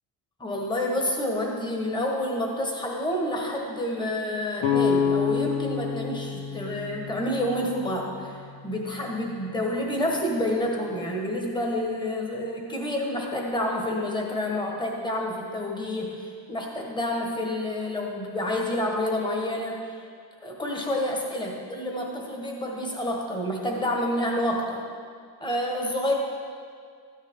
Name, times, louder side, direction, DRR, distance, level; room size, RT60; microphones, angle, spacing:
voice 1, 0.4-19.8 20.4-24.8 25.4-26.1, left 1 dB, 10° left, 0 dB, 1.4 m, -28 dB
sound 1, 4.6-8.4, left 6 dB, 85° left, 1.3 m, -27 dB
13.5 x 9.9 x 3.7 m, 2.1 s
cardioid pair, 155°, 42 cm